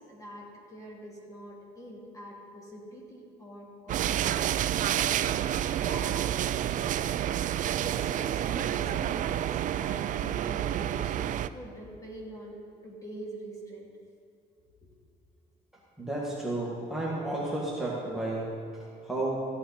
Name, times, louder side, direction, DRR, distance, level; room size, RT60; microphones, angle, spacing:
voice 1, 0.0-4.6 5.6-6.2 7.8-9.5 9.7-12.6 12.8-13.9 14.8-14.9, equal, 20° left, -3 dB, 2.6 m, -44 dB
sound 1, 3.9-11.5, right 11 dB, 50° right, 0.4 m, -29 dB
voice 2, 16.0-19.4, right 2 dB, 5° right, -6 dB, 2.0 m, -32 dB
15.0 x 9.2 x 4.3 m, 2.5 s
cardioid pair, 110°, 17 cm